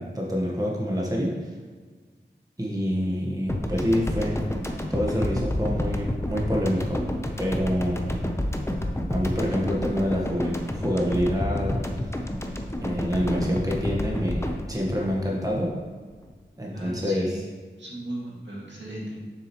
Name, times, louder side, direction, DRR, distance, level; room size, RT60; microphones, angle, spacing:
voice 1, 0.0-1.3 2.6-4.4 4.9-7.0 7.4-8.0 9.1-11.7 12.8-15.7 16.6-17.4, equal, 20° right, -2 dB, 1.4 m, -27 dB
sound 1, 3.5-16.0, left 1 dB, 15° left, 0.8 m, -29 dB
voice 2, 16.7-17.5 17.8-19.2, right 1 dB, 75° right, -5 dB, 2.2 m, -37 dB
7.2 x 6.6 x 3.1 m, 1.5 s
wide cardioid pair, 45°, 19 cm